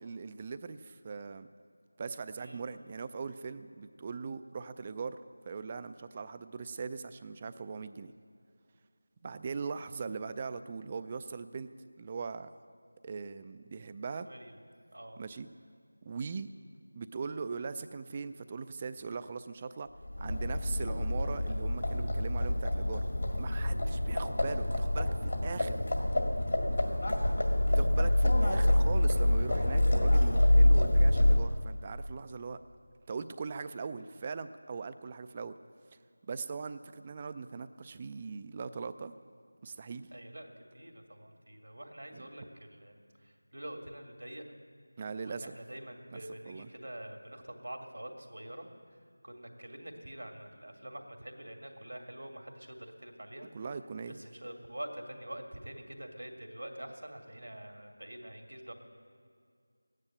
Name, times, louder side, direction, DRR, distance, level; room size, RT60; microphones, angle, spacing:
voice 1, 0.0-1.5 2.0-5.2 5.5-8.1 9.2-11.7 12.0-12.5 13.0-14.3 15.2-15.5 16.0-16.5 17.0-19.9 20.2-23.0 23.4-25.8 27.8-32.6 33.1-35.5 36.3-39.1 39.6-40.1 42.1-42.3 45.0-45.5 46.1-46.7 53.5-54.2, right 5 dB, 20° right, 12 dB, 0.4 m, -40 dB
Livestock farm animals working animals, 20.0-31.7, left 1 dB, 60° left, 1.9 m, -26 dB
voice 2, 23.9-24.2 27.0-27.3 40.1-43.0 43.2-44.4 45.2-48.7 49.2-53.5 54.2-58.7, right 1 dB, 85° right, 4 dB, 2.2 m, -46 dB
14.0 x 9.8 x 8.8 m, 2.3 s
figure-of-eight pair, 175°, 0 cm